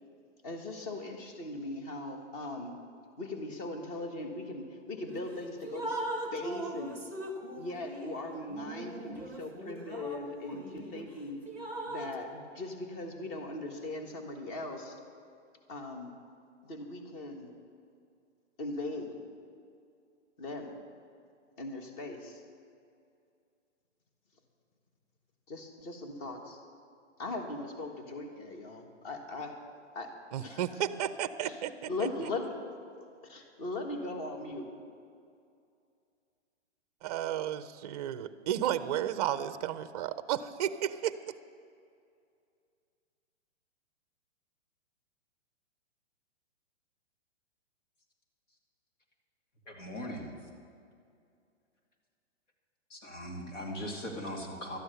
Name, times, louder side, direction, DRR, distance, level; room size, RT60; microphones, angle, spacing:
voice 1, 0.4-2.7 3.2-6.0 6.3-6.9 7.5-11.4 11.8-15.0 15.7-16.1 16.6-17.5 18.6-19.2 20.4-20.7 21.6-22.4 25.5-26.6 27.2-29.5 29.9-30.1 30.4-30.7 31.4-31.6 31.9-32.5 33.2-34.7, left 2 dB, 30° left, 4 dB, 1.5 m, -39 dB
Drip, 5.1-5.3 5.6-11.0 11.5-12.2, right 1 dB, 5° left, 0.9 m, -40 dB
voice 2, 30.3-31.9 37.0-41.3, right 11 dB, 35° right, 13 dB, 0.4 m, -33 dB
voice 3, 49.7-50.4 52.9-54.8, equal, 85° left, 0 dB, 2.7 m, -39 dB
13.0 x 9.8 x 6.8 m, 2.4 s
hypercardioid pair, 150°, 37 cm